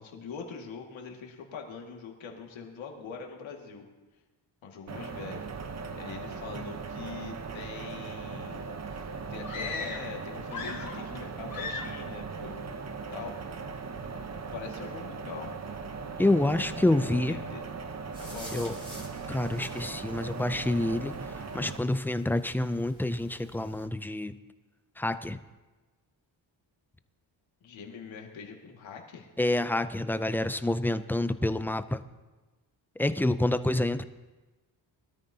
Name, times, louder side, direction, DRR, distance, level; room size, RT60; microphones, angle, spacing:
voice 1, 0.0-3.9 4.6-5.4 6.0-12.7 13.1-13.4 14.5-15.5 16.7-17.7 18.3-18.8 27.6-29.3, left 5 dB, 85° left, 1 dB, 2.0 m, -43 dB
sound 1, 4.9-21.8, right 4 dB, 35° right, 0.9 m, -39 dB
sound 2, 9.4-10.2 10.5-11.2 11.5-12.0, left 4 dB, 50° left, 4.5 m, -37 dB
voice 2, 16.2-17.4 18.5-18.7 19.3-21.2 21.5-24.4 25.0-25.4 29.4-32.0 33.0-34.0, left 1 dB, 5° left, 11 dB, 0.3 m, -27 dB
sound 3, 18.1-23.9, equal, 10° right, 2.6 m, -49 dB
21.5 x 13.0 x 2.8 m, 1.2 s
cardioid pair, 120°, 45 cm